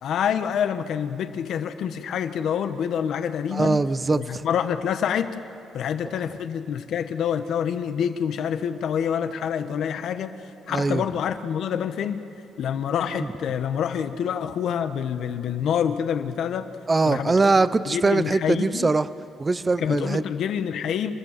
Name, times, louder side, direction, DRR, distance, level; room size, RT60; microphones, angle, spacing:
voice 1, 0.0-3.8 4.1-5.3 5.7-10.4 10.7-12.2 12.6-16.7 17.1-17.5 17.9-18.9 19.8-21.1, left 8 dB, 70° left, 9 dB, 1.3 m, -27 dB
voice 2, 3.5-4.4 10.7-11.0 13.1-13.3 16.9-19.1 19.4-20.2, right 3 dB, 25° right, 15 dB, 0.7 m, -22 dB
28.0 x 14.0 x 7.6 m, 2.7 s
cardioid pair, 90°, 0 cm